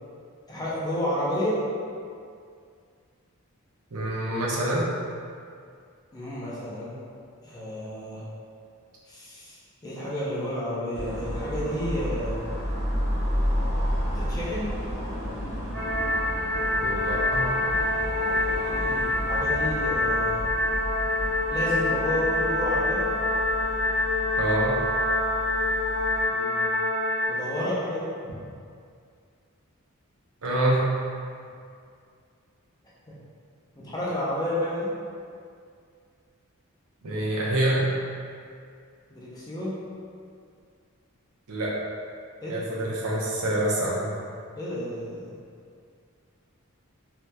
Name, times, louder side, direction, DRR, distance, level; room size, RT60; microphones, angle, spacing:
voice 1, 0.5-1.6 6.1-6.9 7.4-8.2 9.1-12.4 14.1-14.7 18.7-20.4 21.5-23.1 26.3-26.7 27.3-28.1 33.8-34.9 39.1-39.7 42.4-42.7 44.6-45.3, left 1 dB, 15° left, -8 dB, 0.5 m, -31 dB
voice 2, 3.9-4.9 16.8-17.5 24.4-24.7 30.4-30.8 37.0-37.8 41.5-41.7 42.5-44.1, right 1 dB, 80° right, -5 dB, 0.6 m, -26 dB
sound 1, 10.9-26.3, equal, 20° right, 1.1 m, -32 dB
sound 2, 15.7-27.3, left 2 dB, 60° right, 1.2 m, -26 dB
3.2 x 2.7 x 2.2 m, 2.3 s
head